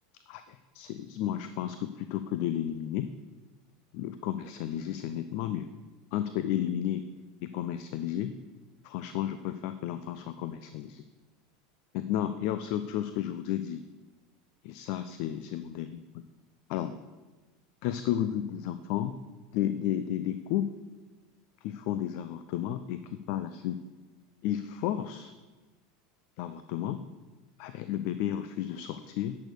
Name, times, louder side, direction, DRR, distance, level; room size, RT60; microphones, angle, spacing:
voice 1, 0.3-3.1 3.9-5.7 6.1-7.1 7.4-8.3 8.8-11.0 11.9-13.8 14.6-16.0 16.7-16.9 17.8-19.1 19.5-20.7 21.6-23.8 24.4-25.3 26.4-27.0 27.6-29.4, left 11 dB, 55° left, 11 dB, 0.5 m, -32 dB
10.5 x 6.4 x 6.6 m, 1.2 s
figure-of-eight pair, 80°, 0 cm